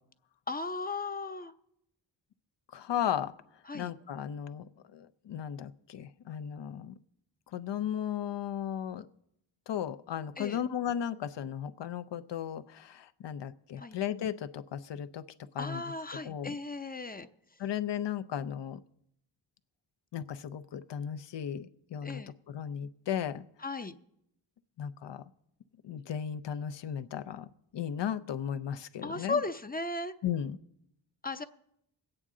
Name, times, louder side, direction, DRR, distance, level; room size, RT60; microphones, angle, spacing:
voice 1, 0.5-1.5 3.7-3.9 10.4-10.6 13.8-14.0 15.6-17.3 22.0-22.3 23.6-24.0 29.0-30.1 31.2-31.4, left 3 dB, 20° left, 9 dB, 0.6 m, -36 dB
voice 2, 2.7-3.3 3.7-7.0 7.5-9.1 9.7-15.2 15.5-15.8 16.2-16.5 17.6-18.8 20.1-22.2 22.5-23.4 24.8-25.2 25.8-29.4 30.2-30.6, left 9 dB, 70° left, 11 dB, 0.7 m, -35 dB
22.0 x 8.8 x 3.7 m, 0.77 s
cardioid pair, 75°, 45 cm